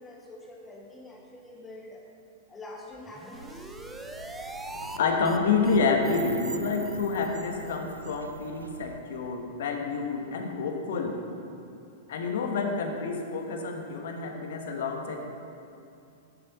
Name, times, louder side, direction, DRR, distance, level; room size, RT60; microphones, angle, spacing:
voice 1, 0.0-2.0 2.5-3.8, left 2 dB, 15° left, -1 dB, 1.7 m, -45 dB
sound 1, 3.0-5.0 5.2-5.4 5.6-5.8 6.0-6.2 6.4-6.6 6.8-7.0 7.3-7.4 7.7-7.8 8.1-8.2, right 1 dB, 5° right, 0.6 m, -42 dB
sound 2, 3.3-9.0, right 4 dB, 85° right, 0.3 m, -43 dB
voice 2, 4.9-11.2 12.1-15.3, left 4 dB, 65° left, 3 dB, 1.1 m, -28 dB
11.0 x 6.9 x 4.1 m, 2.6 s
figure-of-eight pair, 100°, 0 cm